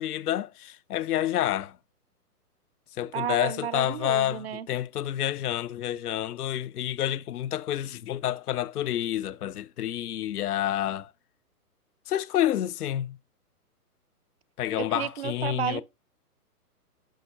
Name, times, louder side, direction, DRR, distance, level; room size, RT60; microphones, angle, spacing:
voice 1, 0.0-1.8 3.0-11.1 12.1-13.2 14.6-15.8, left 12 dB, 70° left, 0.6 m, -29 dB
voice 2, 3.1-4.7 14.8-15.8, right 10 dB, 45° right, 0.5 m, -32 dB
10.0 x 5.9 x 2.5 m
hypercardioid pair, 130°, 47 cm